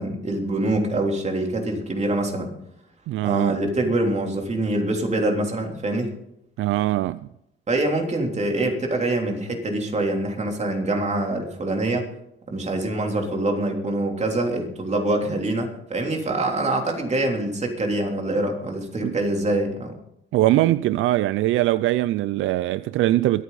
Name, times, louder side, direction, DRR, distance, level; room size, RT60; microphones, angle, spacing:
voice 1, 0.0-2.5 3.2-6.1 7.7-12.1 12.5-19.9, right 2 dB, 35° right, 3.5 m, -25 dB
voice 2, 3.1-3.6 6.6-7.2 19.0-19.1 20.3-23.4, right 15 dB, 80° right, 0.4 m, -21 dB
24.0 x 9.5 x 4.2 m
cardioid pair, 90°, 20 cm